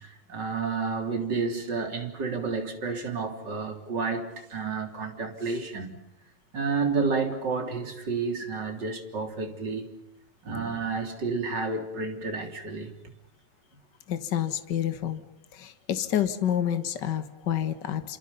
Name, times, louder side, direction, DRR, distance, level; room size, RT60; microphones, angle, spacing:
voice 1, 0.0-6.0 6.5-10.0 10.4-12.9, right 4 dB, 30° right, 3.7 m, -30 dB
voice 2, 14.1-15.2 15.5-18.2, left 10 dB, 65° left, 1.1 m, -28 dB
29.0 x 27.5 x 5.5 m
omnidirectional pair, 4.5 m